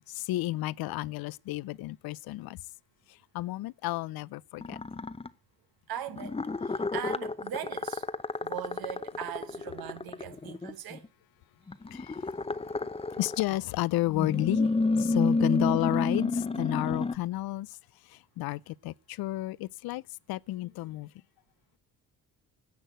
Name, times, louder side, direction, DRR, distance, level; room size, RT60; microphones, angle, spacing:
voice 1, 0.1-2.6 3.3-4.8 11.9-12.2 12.5-12.6 13.2-14.7 15.0-17.7 18.1-20.0 20.3-21.1, left 17 dB, 75° left, 0.5 m, -31 dB
sound 1, 4.6-5.3 6.1-11.1 11.7-13.5 14.1-17.2, left 3 dB, 15° left, 0.7 m, -30 dB
voice 2, 5.9-8.0 8.4-11.1, right 10 dB, 75° right, 1.4 m, -40 dB
10.5 x 6.3 x 7.9 m
cardioid pair, 70°, 37 cm